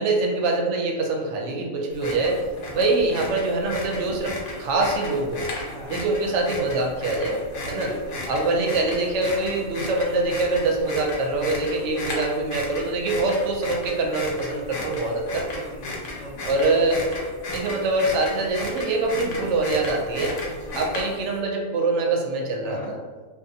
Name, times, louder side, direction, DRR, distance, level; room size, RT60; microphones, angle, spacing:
voice 1, 0.0-2.4 2.7-5.5 5.9-7.9 8.3-15.4 16.4-17.0 17.5-20.4 20.7-22.8, right 2 dB, 75° right, 1 dB, 0.9 m, -24 dB
sound 1, 1.9-21.4, left 2 dB, 80° left, 1.0 m, -35 dB
voice 2, 7.6-8.3 14.7-16.6 20.4-20.8 22.6-22.9, left 1 dB, 45° left, -5 dB, 0.4 m, -41 dB
2.6 x 2.3 x 2.6 m, 1.5 s
omnidirectional pair, 1.3 m